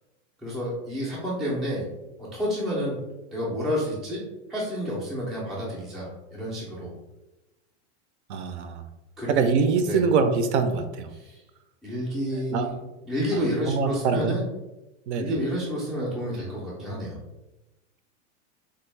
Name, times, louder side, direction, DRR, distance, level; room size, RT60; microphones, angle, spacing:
voice 1, 0.4-1.9 2.2-3.0 3.3-4.2 4.5-6.9 9.2-9.4 9.8-10.0 11.1-11.4 11.8-12.8 13.1-14.4 15.1-17.2, equal, ahead, -7 dB, 0.3 m, -30 dB
voice 2, 8.3-8.8 9.3-11.1 12.3-12.7 13.3-14.4 15.1-15.3, right 5 dB, 70° right, 8 dB, 0.5 m, -24 dB
3.4 x 2.1 x 3.1 m, 0.99 s
supercardioid pair, 150°, 36 cm